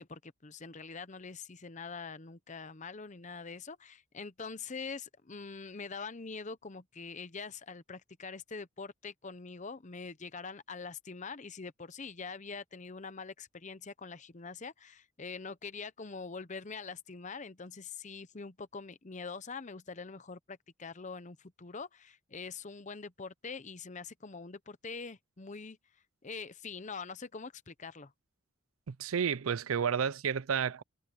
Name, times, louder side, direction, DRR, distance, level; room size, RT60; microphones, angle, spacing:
voice 1, 0.0-25.8 26.2-28.1, left 4 dB, 35° left, 0.8 m, -44 dB
voice 2, 28.9-30.8, right 7 dB, 85° right, 0.5 m, -31 dB
head